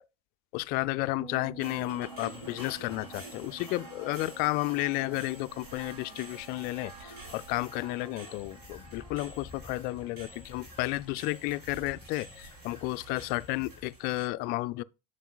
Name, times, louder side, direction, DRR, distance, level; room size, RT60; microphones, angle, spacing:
voice 1, 0.5-14.8, left 20 dB, 50° left, 0.4 m, -32 dB
Bass guitar, 1.2-10.6, right 7 dB, 55° right, 3.1 m, -53 dB
sound 1, 1.6-14.3, right 1 dB, 90° right, 3.2 m, -48 dB
sound 2, 8.4-13.9, left 3 dB, 5° left, 1.8 m, -52 dB
9.0 x 6.6 x 2.3 m
hypercardioid pair, 80°, 20 cm